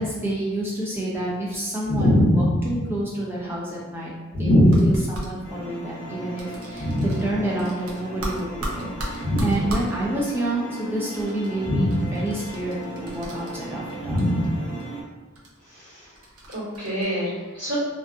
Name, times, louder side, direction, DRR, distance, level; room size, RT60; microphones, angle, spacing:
voice 1, 0.0-4.1 4.4-6.9 7.2-14.2, right 1 dB, 10° right, -5 dB, 0.4 m, -29 dB
voice 2, 1.8-2.7 4.3-4.8 6.8-7.0 9.2-9.5 11.6-12.0 14.0-14.5 15.7-16.1 16.5-17.7, equal, 70° right, -13 dB, 1.4 m, -21 dB
sound 1, 4.6-5.3 6.4-7.3 7.6-9.9 11.2-13.9 14.2-14.8 15.3-15.5 16.1-17.0, right 1 dB, 85° right, 0.6 m, -35 dB
sound 2, 5.4-15.0, right 2 dB, 55° left, 0.7 m, -37 dB
2.5 x 2.4 x 2.3 m, 1.3 s
head